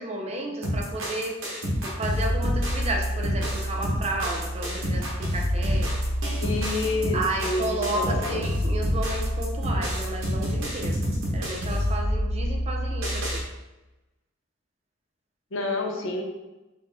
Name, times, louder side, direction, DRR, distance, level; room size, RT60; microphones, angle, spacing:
voice 1, 0.0-1.4 1.8-5.9 7.1-11.0 11.3-13.4, right 1 dB, 30° right, 2 dB, 0.6 m, -32 dB
sound 1, 0.6-13.4, equal, 85° right, 1.1 m, -27 dB
voice 2, 6.3-8.4 15.5-16.2, left 2 dB, 70° left, 2 dB, 0.7 m, -29 dB
4.2 x 2.8 x 4.0 m, 1.1 s
head